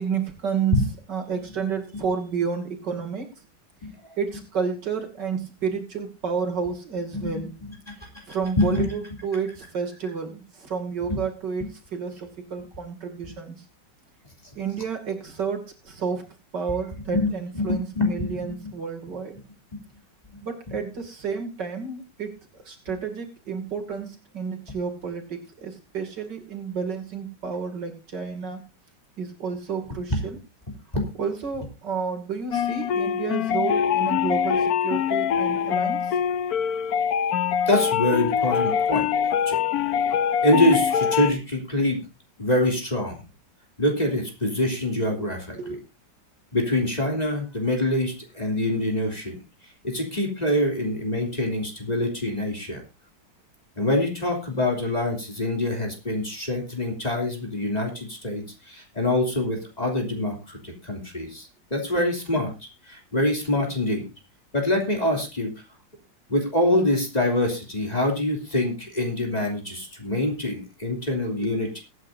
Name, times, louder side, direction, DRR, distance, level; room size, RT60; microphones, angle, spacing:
voice 1, 0.0-3.3 4.2-7.5 8.3-13.6 14.5-16.3 16.5-19.4 20.4-22.4 22.6-28.6 29.2-30.4 31.2-36.2 45.6-45.8 71.4-71.5, right 6 dB, 70° right, 3 dB, 3.2 m, -30 dB
voice 2, 8.6-8.9 11.1-11.2 17.1-18.7 30.9-31.1 37.7-39.1 39.4-39.6 40.4-42.0 42.4-43.2 43.8-45.8 46.5-49.4 49.8-52.8 53.8-62.5 62.9-64.1 64.5-65.5 66.3-71.8, left 1 dB, 20° left, 1 dB, 3.2 m, -25 dB
sound 1, 32.5-41.3, left 8 dB, 60° left, 1.2 m, -24 dB
22.0 x 9.7 x 2.7 m, 0.27 s
omnidirectional pair, 2.0 m